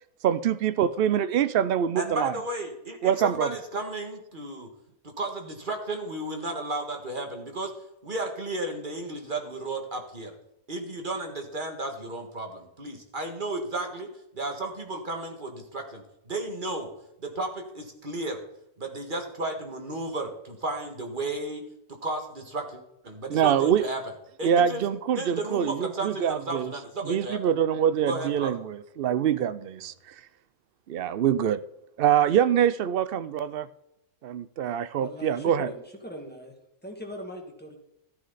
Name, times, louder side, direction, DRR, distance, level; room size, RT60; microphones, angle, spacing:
voice 1, 0.2-2.3 3.0-3.5 23.3-23.8 24.4-26.7 27.0-30.1 30.9-31.6 32.0-33.7 34.2-35.7, right 9 dB, 85° right, 15 dB, 0.5 m, -24 dB
voice 2, 1.9-4.7 5.0-7.7 8.0-10.3 10.7-16.9 17.2-18.4 18.8-21.6 22.0-24.0 24.4-24.8 25.1-27.4 28.0-28.6, right 2 dB, 35° right, 3 dB, 1.9 m, -33 dB
voice 3, 35.0-36.5 36.8-37.8, equal, 5° left, 1 dB, 2.1 m, -40 dB
14.0 x 9.5 x 4.1 m, 0.83 s
omnidirectional pair, 1.6 m